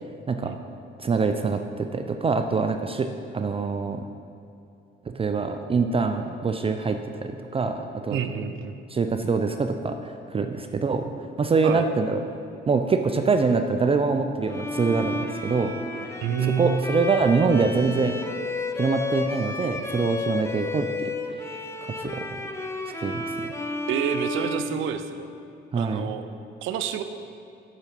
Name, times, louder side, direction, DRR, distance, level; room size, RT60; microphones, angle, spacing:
voice 1, 1.0-3.1 3.3-4.0 5.2-8.2 8.9-10.0 10.3-11.1 11.4-12.2 12.7-15.7 16.1-16.2 16.6-18.1 18.8-21.1 22.0-22.2 23.0-23.2 25.7-26.1, right 4 dB, 30° right, 6 dB, 0.4 m, -24 dB
voice 2, 8.1-8.8 11.6-11.9 16.2-16.8 23.9-25.3 25.8-26.2 26.6-27.0, right 8 dB, 85° right, 9 dB, 0.5 m, -28 dB
Bowed string instrument, 14.5-25.5, left 2 dB, 15° left, 0.6 m, -32 dB
6.7 x 5.9 x 5.9 m, 2.6 s
cardioid pair, 90°, 20 cm